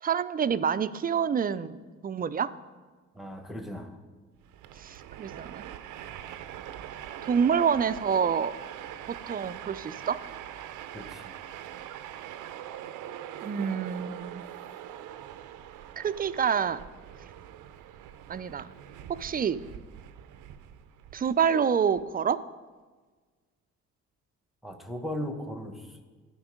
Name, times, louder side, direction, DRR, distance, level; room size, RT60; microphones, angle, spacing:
voice 1, 0.0-2.5 4.8-5.6 7.2-8.6 9.3-10.2 13.4-14.4 16.0-16.8 18.3-18.7 19.1-19.6 21.1-22.4, right 7 dB, 30° right, 14 dB, 0.4 m, -27 dB
voice 2, 3.1-4.0 10.9-11.3 24.6-26.0, left 1 dB, ahead, 6 dB, 1.0 m, -37 dB
Train, 4.4-22.0, right 11 dB, 90° right, 0.6 m, -43 dB
12.5 x 5.3 x 5.1 m, 1.4 s
cardioid pair, 90°, 30 cm